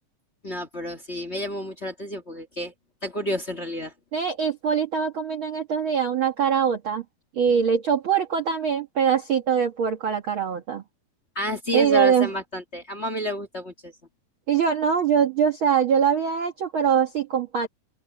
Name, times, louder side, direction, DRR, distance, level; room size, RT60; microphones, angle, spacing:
voice 1, 0.4-2.7 3.0-3.9 11.3-13.9, equal, 25° left, 1.6 m, -30 dB
voice 2, 4.1-7.0 7.3-10.8 11.7-12.3 14.5-17.7, right 7 dB, 50° right, 1.9 m, -23 dB
open air
omnidirectional pair, 3.6 m